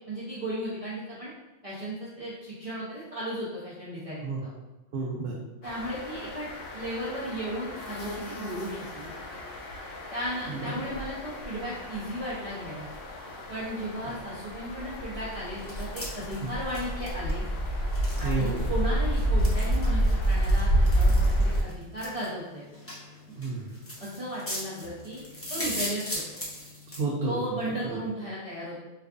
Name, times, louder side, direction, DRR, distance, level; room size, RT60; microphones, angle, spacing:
voice 1, 0.1-1.3 1.6-4.5 5.6-6.5 6.7-9.1 10.1-12.9 13.5-17.5 18.2-22.6 24.0-25.2 25.5-26.2 27.2-28.8, right 1 dB, 35° right, -10 dB, 0.7 m, -35 dB
voice 2, 4.9-5.4 10.5-10.8 16.4-16.5 18.2-18.7 23.4-23.7 26.9-27.6 27.8-28.0, right 3 dB, 70° right, -4 dB, 0.8 m, -31 dB
sound 1, 5.6-21.6, equal, 65° left, 0.8 m, -29 dB
sound 2, 15.4-27.0, left 1 dB, 20° left, 0.5 m, -40 dB
4.4 x 2.3 x 2.5 m, 1.1 s
omnidirectional pair, 1.1 m